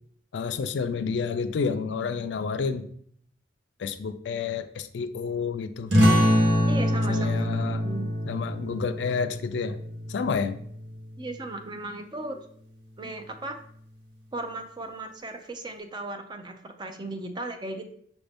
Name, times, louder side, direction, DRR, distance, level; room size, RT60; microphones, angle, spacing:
voice 1, 0.3-2.9 3.8-5.9 7.1-7.9 8.3-9.8 10.1-10.6, left 5 dB, 80° left, 10 dB, 0.4 m, -29 dB
sound 1, 5.9-11.1, equal, 85° right, 1.1 m, -25 dB
voice 2, 6.7-7.4 7.7-8.1 11.2-12.5 13.0-13.6 14.3-17.9, right 2 dB, 25° right, 7 dB, 0.4 m, -36 dB
5.9 x 2.6 x 3.4 m, 0.63 s
head